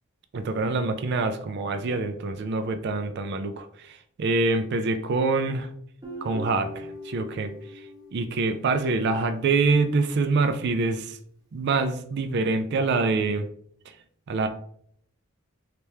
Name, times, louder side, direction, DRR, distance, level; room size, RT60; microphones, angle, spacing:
voice 1, 0.3-5.7 6.2-7.5 8.1-11.2 11.5-13.5 14.3-14.5, right 3 dB, 55° right, 8 dB, 0.4 m, -25 dB
Guitar, 6.0-9.3, left 1 dB, 20° right, 0.8 m, -41 dB
3.4 x 2.9 x 3.2 m, 0.64 s
head